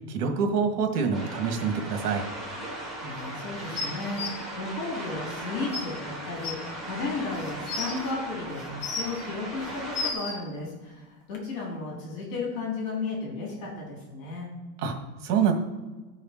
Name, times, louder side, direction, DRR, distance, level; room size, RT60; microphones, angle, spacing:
voice 1, 0.1-2.3 14.8-15.0 15.2-15.5, right 6 dB, 85° right, 4 dB, 1.9 m, -26 dB
sound 1, 1.1-10.1, right 1 dB, ahead, 0.3 m, -38 dB
voice 2, 3.0-14.5, left 3 dB, 55° left, -3 dB, 3.5 m, -34 dB
sound 2, 3.7-4.3 5.3-5.4 5.7-5.8 6.4-6.5 7.3-7.9 8.6-9.2 9.7-10.3 11.3-11.4, left 4 dB, 25° left, 1.2 m, -32 dB
14.0 x 5.0 x 4.4 m, 1.3 s
supercardioid pair, 175°, 46 cm